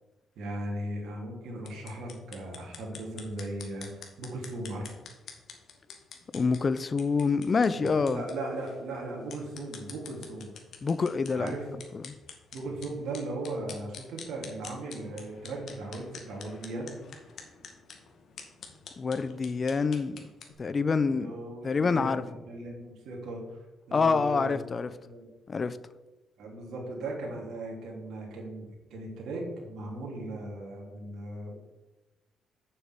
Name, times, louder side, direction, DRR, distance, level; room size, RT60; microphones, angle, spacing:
voice 1, 0.4-4.9 7.6-10.5 11.3-11.7 12.5-16.9 21.1-23.6 23.9-24.5 25.1-25.3 26.4-31.5, right 2 dB, 80° right, 3.2 m, -38 dB
sound 1, 1.6-20.5, left 6 dB, 65° left, 2.0 m, -48 dB
voice 2, 6.3-8.2 10.8-11.6 11.9-12.1 19.0-20.2 20.6-21.3 21.6-22.2 23.9-24.9 25.5-25.8, left 4 dB, 35° left, 0.6 m, -26 dB
7.4 x 6.9 x 8.2 m
cardioid pair, 90°, 0 cm